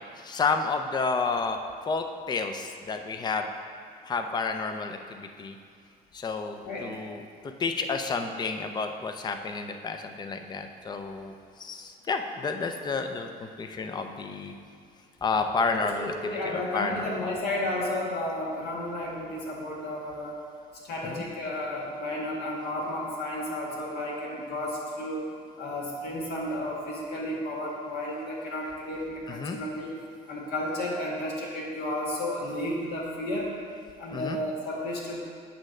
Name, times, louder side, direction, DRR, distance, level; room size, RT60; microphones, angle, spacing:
voice 1, 0.2-1.6 1.9-3.5 4.0-5.6 6.1-7.2 7.6-11.3 11.6-14.5 15.2-17.4 21.1-21.2 29.3-29.6 34.1-34.4, left 4 dB, 25° left, 6 dB, 0.5 m, -30 dB
voice 2, 6.6-7.0 15.7-20.3 20.8-25.3 25.6-29.9 30.3-33.5 34.0-35.2, left 1 dB, 70° left, -4 dB, 1.8 m, -32 dB
8.6 x 3.2 x 6.4 m, 2.1 s
cardioid pair, 110°, 17 cm